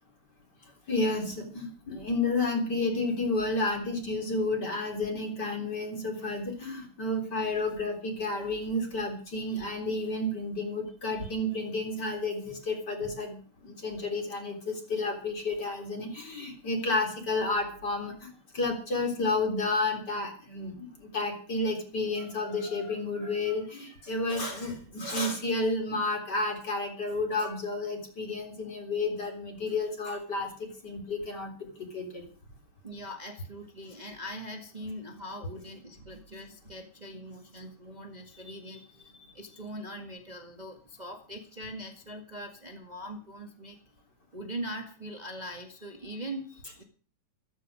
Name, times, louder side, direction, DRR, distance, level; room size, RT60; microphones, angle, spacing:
voice 1, 0.9-13.4 13.6-32.2, left 2 dB, 25° left, 3 dB, 3.9 m, -31 dB
voice 2, 32.8-43.8 44.3-46.8, equal, 50° right, 4 dB, 0.5 m, -42 dB
14.5 x 14.0 x 6.3 m, 0.40 s
omnidirectional pair, 4.3 m